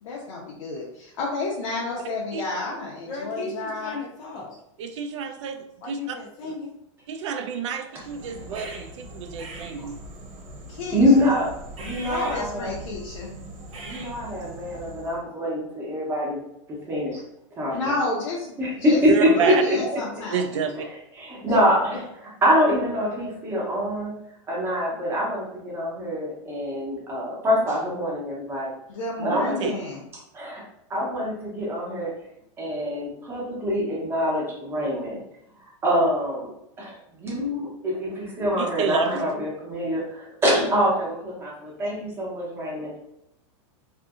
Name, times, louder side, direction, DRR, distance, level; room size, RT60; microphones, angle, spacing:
voice 1, 0.0-4.0 10.7-11.3 12.0-13.3 17.7-19.0 19.3-20.4 28.9-30.0, left 3 dB, 85° left, -4 dB, 0.7 m, -31 dB
voice 2, 3.1-4.5 5.8-6.8, left 3 dB, 25° left, -1 dB, 0.4 m, -36 dB
voice 3, 4.8-6.2 7.1-10.0 19.1-19.6 20.3-20.9 29.2-29.7 38.6-39.2, right 7 dB, 65° right, 7 dB, 0.4 m, -29 dB
sound 1, 8.0-15.2, right 1 dB, 80° right, 1.0 m, -40 dB
voice 4, 10.9-11.5 11.8-12.7 13.8-16.4 16.9-17.2 17.6-17.9 18.6-19.9 21.2-24.1 24.5-28.7 29.2-29.7 30.3-30.6 30.9-32.1 32.6-35.2 35.8-43.0, equal, 15° right, -4 dB, 0.7 m, -25 dB
2.7 x 2.5 x 2.4 m, 0.79 s
supercardioid pair, 165°, 17 cm